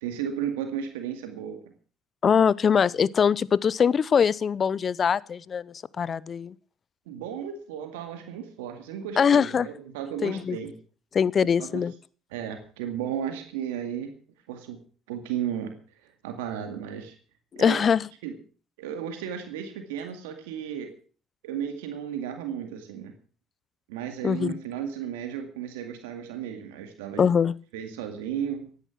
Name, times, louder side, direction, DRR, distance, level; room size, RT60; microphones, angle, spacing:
voice 1, 0.0-1.6 7.1-10.7 11.6-11.9 12.3-14.1 14.5-14.8 15.1-17.2 17.6-17.8 18.2-18.3 18.8-20.9 21.4-23.1 23.9-27.3 27.7-28.7, right 9 dB, 90° right, 6 dB, 2.1 m, -34 dB
voice 2, 2.2-6.5 9.2-9.7 10.2-10.6 11.1-11.9 17.5-18.0 24.2-24.5 27.2-27.5, left 7 dB, 45° left, 22 dB, 0.6 m, -22 dB
15.5 x 10.5 x 6.1 m, 0.41 s
supercardioid pair, 70°, 0 cm